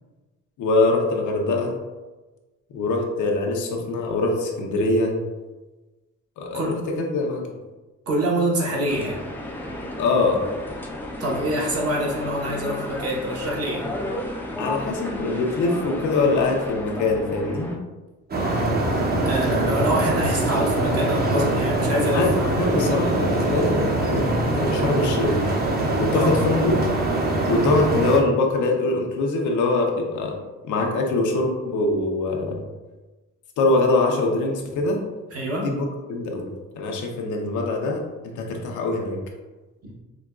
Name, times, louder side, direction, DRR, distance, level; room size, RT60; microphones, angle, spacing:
voice 1, 0.6-1.7 2.7-5.1 6.4-7.5 10.0-10.5 14.6-17.8 22.1-22.3 22.6-25.4 26.0-26.7 27.5-30.4 30.6-32.6 33.6-35.0 35.6-38.0 38.4-39.2, left 2 dB, 80° left, 1 dB, 0.7 m, -23 dB
voice 2, 8.1-9.2 11.2-13.9 19.2-22.5 26.1-26.4 35.3-35.7 39.8-39.9, right 1 dB, 50° right, -2 dB, 1.1 m, -25 dB
sound 1, 8.9-17.8, left 1 dB, 5° left, 0.4 m, -33 dB
sound 2, 18.3-28.2, right 2 dB, 30° right, 0.7 m, -23 dB
4.9 x 2.2 x 2.4 m, 1.2 s
cardioid pair, 90°, 30 cm